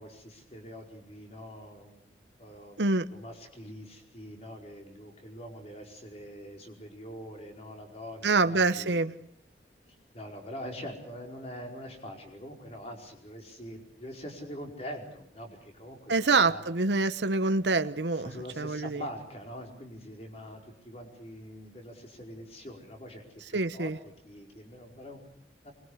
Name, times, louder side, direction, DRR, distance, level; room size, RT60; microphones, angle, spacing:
voice 1, 0.0-2.8 3.1-9.0 9.9-16.1 16.4-16.6 18.1-23.2 23.5-23.9 24.2-25.2 25.6-25.7, equal, 35° left, 5.0 m, -44 dB
voice 2, 2.8-3.1 8.2-9.1 16.1-19.0 23.5-24.0, right 3 dB, 85° right, 1.0 m, -26 dB
24.5 x 22.5 x 8.2 m
head